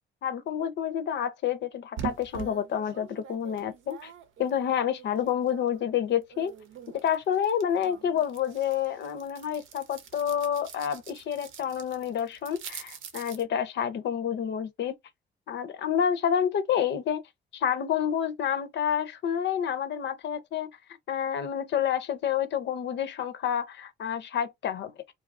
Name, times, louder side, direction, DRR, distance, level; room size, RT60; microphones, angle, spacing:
voice 1, 0.2-4.1 4.4-6.5 7.0-14.9 15.5-17.2 17.5-20.7 21.1-24.9, left 9 dB, 65° left, 0.6 m, -29 dB
sound 1, 2.0-5.9 6.2-13.4, right 8 dB, 80° right, 0.7 m, -44 dB
2.7 x 2.4 x 2.4 m
cardioid pair, 90°, 20 cm